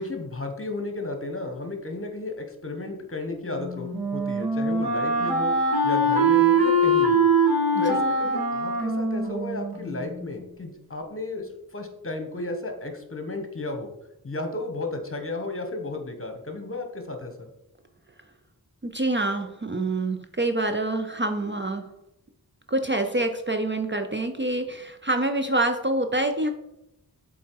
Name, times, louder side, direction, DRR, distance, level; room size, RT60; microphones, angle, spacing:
voice 1, 0.0-5.6 5.8-7.2 7.8-13.9 14.2-17.5, left 2 dB, 35° left, 4 dB, 1.3 m, -33 dB
Wind instrument woodwind instrument, 3.5-10.3, right 2 dB, 65° right, 2.3 m, -23 dB
voice 2, 18.8-21.9 22.7-26.5, right 2 dB, 30° right, 6 dB, 0.6 m, -26 dB
7.3 x 4.2 x 4.7 m, 0.86 s
wide cardioid pair, 65°, 39 cm